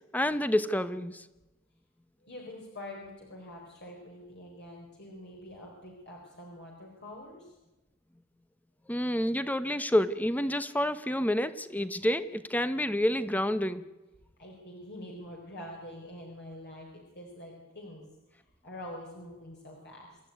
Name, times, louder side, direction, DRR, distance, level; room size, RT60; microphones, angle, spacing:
voice 1, 0.1-1.2 8.9-13.9, left 1 dB, 10° left, 13 dB, 1.0 m, -28 dB
voice 2, 2.2-7.5 14.4-18.1 18.6-20.2, left 1 dB, 55° left, 0 dB, 4.4 m, -45 dB
27.0 x 14.0 x 9.5 m, 1.0 s
head